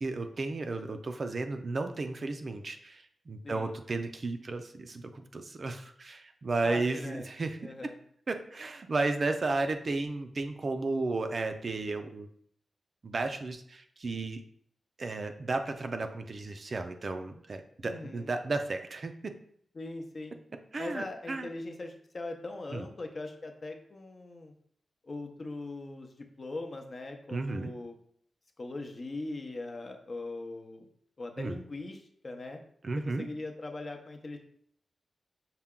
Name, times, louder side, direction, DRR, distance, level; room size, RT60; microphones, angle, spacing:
voice 1, 0.0-7.7 8.3-12.3 13.0-14.4 15.0-19.3 20.7-21.5 22.7-22.9 27.3-27.7 31.4-31.6 32.8-33.3, right 3 dB, 45° right, 7 dB, 0.4 m, -33 dB
voice 2, 6.6-7.2 7.6-8.0 17.8-18.3 19.7-20.4 20.8-24.5 25.0-27.9 28.6-30.9 31.2-32.6 33.0-34.4, left 2 dB, 45° left, 4 dB, 0.6 m, -40 dB
5.7 x 2.2 x 3.6 m, 0.64 s
wide cardioid pair, 100°, 0 cm